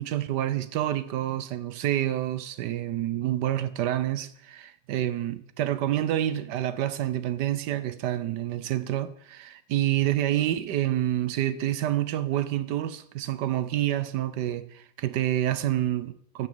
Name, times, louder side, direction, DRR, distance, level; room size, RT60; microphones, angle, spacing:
voice 1, 0.0-16.5, right 12 dB, 70° right, 1.2 m, -28 dB
13.5 x 6.6 x 6.8 m
omnidirectional pair, 2.0 m